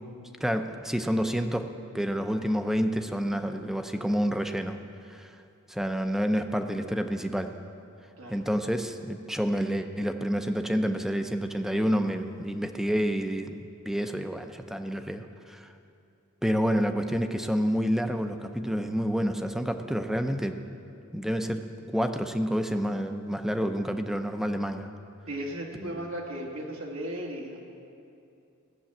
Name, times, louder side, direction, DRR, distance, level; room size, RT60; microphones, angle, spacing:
voice 1, 0.4-1.7 1.9-4.8 5.1-5.3 5.7-7.5 8.3-15.7 16.4-20.6 21.1-24.9 25.8-26.0, equal, ahead, 7 dB, 0.6 m, -29 dB
voice 2, 25.3-27.6, right 1 dB, 75° right, -2 dB, 2.3 m, -36 dB
16.0 x 7.0 x 8.8 m, 2.6 s
head